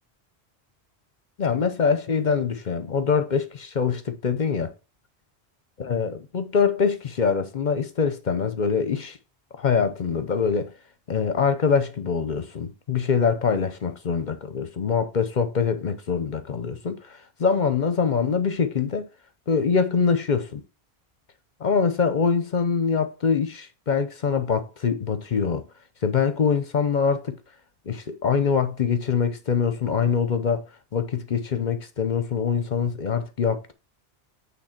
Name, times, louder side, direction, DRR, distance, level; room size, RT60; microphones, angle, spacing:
voice 1, 1.4-4.7 5.8-9.2 9.6-10.7 11.1-19.1 19.5-20.6 21.6-25.6 26.0-27.4 27.9-30.6 30.9-33.7, left 6 dB, 50° left, 0.7 m, -24 dB
8.9 x 3.3 x 5.8 m
omnidirectional pair, 1.1 m